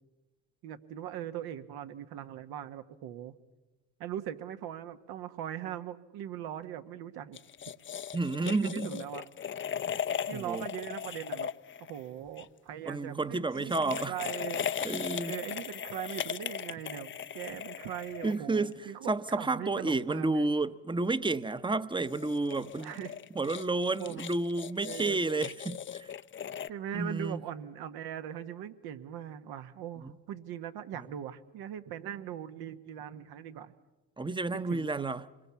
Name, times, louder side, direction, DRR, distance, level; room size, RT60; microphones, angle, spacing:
voice 1, 0.6-3.3 4.0-7.4 8.4-9.2 10.3-11.5 11.8-14.7 15.3-20.5 22.8-23.1 24.0-24.2 24.9-25.2 26.7-33.7 34.5-35.2, right 10 dB, 70° right, 1.5 m, -40 dB
sound 1, 7.3-12.5 13.5-18.7 21.9-26.7, left 8 dB, 30° left, 0.7 m, -38 dB
voice 2, 8.1-9.0 10.3-10.7 12.9-14.2 14.8-15.3 18.2-22.9 23.3-26.1 26.9-27.4 30.0-30.1 34.2-35.3, right 3 dB, 10° right, 1.0 m, -31 dB
26.0 x 21.5 x 7.1 m
hypercardioid pair, 65°, 40 cm